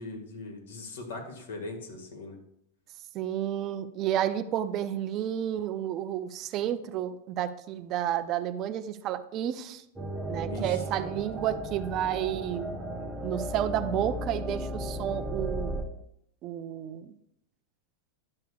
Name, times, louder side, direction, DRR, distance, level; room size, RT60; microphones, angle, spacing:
voice 1, 0.0-2.4 10.5-10.9, left 2 dB, 85° left, 2 dB, 1.7 m, -40 dB
voice 2, 3.1-9.8 10.3-12.7 13.2-15.8 16.4-17.2, right 11 dB, 35° right, 11 dB, 0.4 m, -31 dB
sound 1, 10.0-15.8, right 1 dB, 10° right, 0.7 m, -35 dB
10.5 x 6.6 x 2.3 m, 0.77 s
supercardioid pair, 140°, 0 cm